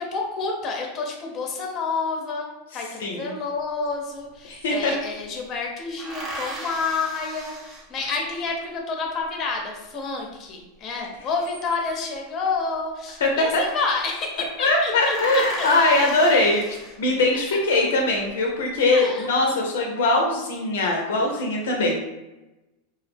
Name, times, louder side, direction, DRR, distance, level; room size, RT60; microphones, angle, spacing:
voice 1, 0.0-2.5 2.7-15.2 15.6-15.7 17.3-17.4 17.7-17.8 18.9-19.3, left 4 dB, 35° left, 1 dB, 0.6 m, -29 dB
voice 2, 2.7-3.3 4.5-4.9 13.2-13.6 14.6-22.0, left 2 dB, 80° left, 0 dB, 0.4 m, -21 dB
sound 1, 3.9-4.0 4.2-5.2 6.0-8.5 11.2-12.1 13.3-13.7 14.0-14.1 14.5-14.6 14.8-17.4 17.9-18.6, right 1 dB, 25° right, 0.6 m, -38 dB
2.2 x 2.0 x 3.3 m, 1.0 s
hypercardioid pair, 110°, 0 cm